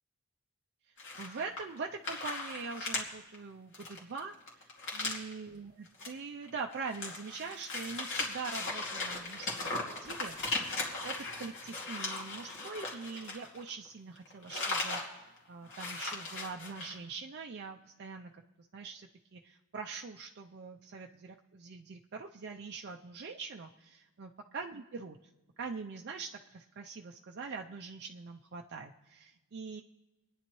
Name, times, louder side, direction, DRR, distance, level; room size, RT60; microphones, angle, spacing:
sound 1, 1.0-1.8 2.0-3.0 3.3-3.4 3.7-5.3 5.9-6.1 6.4-13.9 14.2-15.1 15.4-15.5 15.7-16.9, left 3 dB, 60° left, 2.4 m, -38 dB
voice 1, 1.2-10.7 11.0-18.4 18.7-25.2 25.6-29.8, right 4 dB, 50° right, 2 dB, 0.5 m, -43 dB
27.0 x 9.9 x 3.1 m, 1.1 s
head